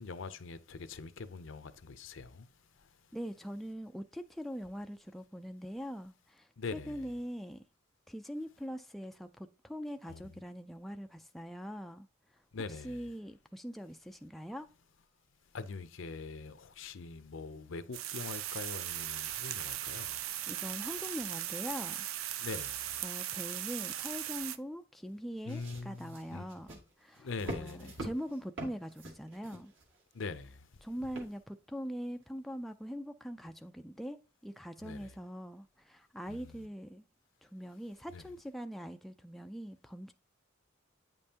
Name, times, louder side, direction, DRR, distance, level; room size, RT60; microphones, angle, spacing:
voice 1, 0.0-2.4 6.6-7.0 10.1-10.2 12.5-13.0 15.5-20.2 22.4-22.8 25.5-26.4 27.2-27.9 30.2-30.5 34.8-35.1 36.3-36.4 38.1-38.2, left 4 dB, 65° left, 0.6 m, -43 dB
voice 2, 3.1-7.6 8.1-12.1 12.3-12.4 12.7-14.7 20.2-22.1 23.0-29.7 30.8-34.2 34.4-37.0 37.4-40.1, equal, ahead, 0.3 m, -42 dB
sound 1, 17.9-24.6, right 12 dB, 85° right, 0.5 m, -38 dB
sound 2, 25.5-30.2 31.0-31.6 32.2-32.3, right 1 dB, 65° right, 2.2 m, -45 dB
9.2 x 5.4 x 2.8 m
head